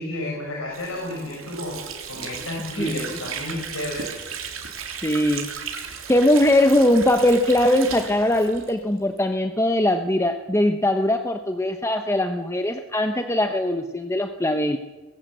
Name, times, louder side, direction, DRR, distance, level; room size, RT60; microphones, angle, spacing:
voice 1, 0.0-1.8 2.1-4.1, left 1 dB, 85° left, -1 dB, 6.2 m, -31 dB
Water / Sink (filling or washing), 0.7-9.3, right 6 dB, 80° right, 3.4 m, -35 dB
voice 2, 5.0-5.5 6.1-14.8, left 1 dB, 15° left, 6 dB, 1.0 m, -21 dB
21.0 x 17.0 x 7.9 m, 1.2 s
head